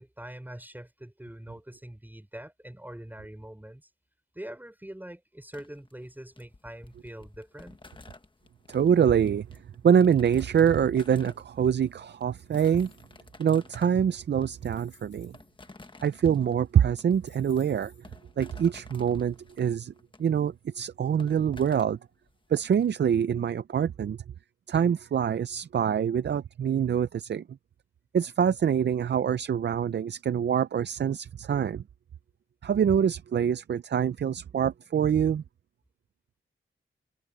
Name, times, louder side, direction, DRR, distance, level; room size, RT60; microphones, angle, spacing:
voice 1, 0.0-3.9 4.3-7.8, right 1 dB, 10° right, 4.3 m, -43 dB
sound 1, 5.5-22.9, left 3 dB, 25° left, 1.3 m, -53 dB
voice 2, 8.7-9.5 9.8-12.9 13.4-15.3 16.0-17.9 18.4-19.9 20.2-22.0 22.5-24.2 24.7-27.4 28.1-31.8 32.6-35.4, right 8 dB, 55° right, 0.4 m, -25 dB
sound 2, 12.3-13.3 14.0-14.1 14.5-15.5 16.4-16.5 16.9-18.2, left 4 dB, 65° left, 7.6 m, -59 dB
wide cardioid pair, 130°, 21 cm